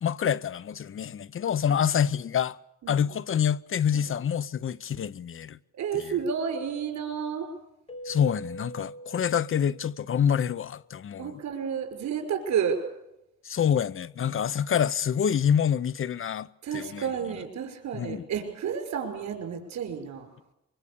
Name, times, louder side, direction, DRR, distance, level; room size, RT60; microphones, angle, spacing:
voice 1, 0.0-2.6 2.9-5.6 5.9-6.1 8.0-11.4 13.4-16.5 16.7-17.1 17.9-18.2, left 8 dB, 45° left, 0.8 m, -27 dB
voice 2, 5.8-7.5 11.2-12.8 16.6-20.3, right 7 dB, 65° right, 5.6 m, -31 dB
Keyboard (musical), 7.9-10.4, right 1 dB, 20° left, 3.9 m, -43 dB
24.0 x 23.5 x 7.0 m
cardioid pair, 90°, 30 cm